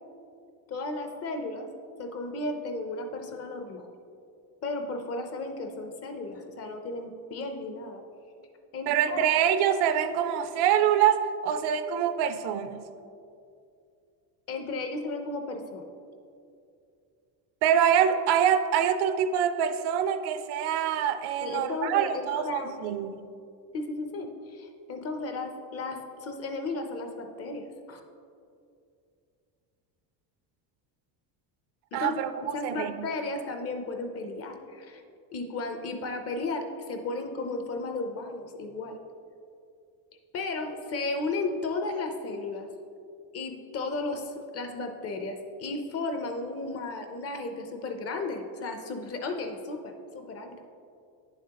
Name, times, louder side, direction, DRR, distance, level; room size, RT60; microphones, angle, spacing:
voice 1, 0.7-1.7 2.0-3.9 4.6-8.0 8.7-9.3 14.5-15.8 21.4-22.8 23.7-28.0 31.9-32.1 32.5-35.0 35.3-39.0 40.3-42.7 43.3-50.6, left 3 dB, 35° left, 5 dB, 0.6 m, -34 dB
voice 2, 8.9-12.9 17.6-23.2 31.9-33.1, right 9 dB, 65° right, 10 dB, 0.6 m, -25 dB
10.0 x 7.3 x 2.9 m, 2.5 s
cardioid pair, 150°, 43 cm